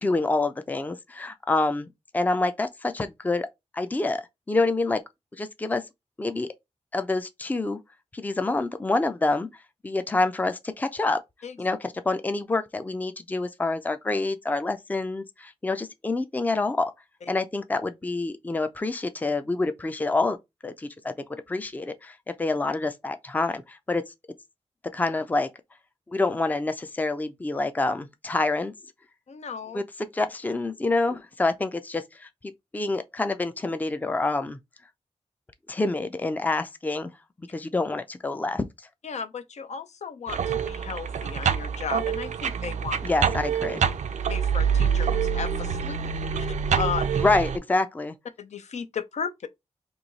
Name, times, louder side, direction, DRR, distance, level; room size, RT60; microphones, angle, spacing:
voice 1, 0.0-3.5 3.7-5.0 5.4-5.8 6.2-6.5 6.9-7.8 8.1-9.5 9.8-11.2 11.6-16.9 17.3-20.4 20.6-24.0 24.9-25.5 26.1-28.7 29.7-32.3 32.7-34.6 35.7-37.2 37.5-38.6 43.0-43.8 47.2-48.2, left 2 dB, 15° left, 0.4 m, -27 dB
voice 2, 29.3-29.8 39.0-43.0 44.3-46.0 46.3-46.5 46.8-47.2 48.4-49.5, left 6 dB, 70° left, 0.5 m, -34 dB
sound 1, 40.3-47.6, right 7 dB, 90° right, 0.4 m, -26 dB
3.0 x 2.7 x 3.9 m
wide cardioid pair, 120°, 12 cm